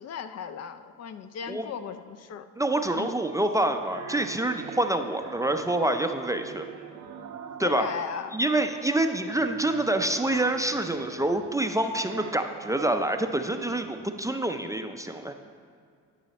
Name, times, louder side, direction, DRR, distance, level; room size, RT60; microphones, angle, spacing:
voice 1, 0.0-2.5 2.9-3.1 7.6-8.4, left 7 dB, 60° left, 10 dB, 0.5 m, -36 dB
voice 2, 2.6-6.7 7.6-7.9 8.3-15.3, right 1 dB, 10° right, 6 dB, 0.4 m, -27 dB
sound 1, 3.4-8.2 8.6-13.9, right 7 dB, 65° right, 0.6 m, -43 dB
12.0 x 5.6 x 4.1 m, 2.2 s
cardioid pair, 90°, 30 cm